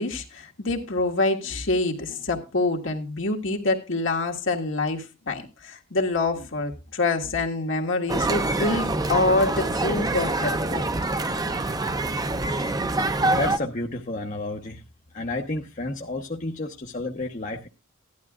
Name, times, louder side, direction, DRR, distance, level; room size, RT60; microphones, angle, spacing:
voice 1, 0.0-10.9, left 2 dB, 65° left, 1.7 m, -26 dB
sound 1, 8.1-13.6, right 2 dB, 20° right, 0.6 m, -25 dB
voice 2, 13.3-14.8 15.1-17.7, left 2 dB, 40° left, 1.0 m, -31 dB
16.0 x 11.5 x 2.4 m
head